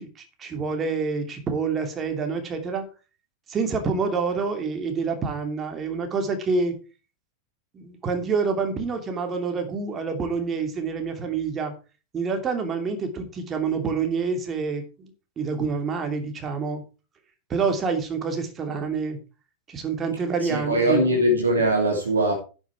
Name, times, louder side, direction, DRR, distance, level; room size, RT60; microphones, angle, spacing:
voice 1, 0.0-2.9 3.5-6.8 7.7-11.7 12.1-16.8 17.5-19.2 19.7-21.0, right 5 dB, 25° right, 2.9 m, -27 dB
voice 2, 20.4-22.3, right 1 dB, 75° right, 2.8 m, -21 dB
12.0 x 7.3 x 4.7 m
figure-of-eight pair, 90°, 0 cm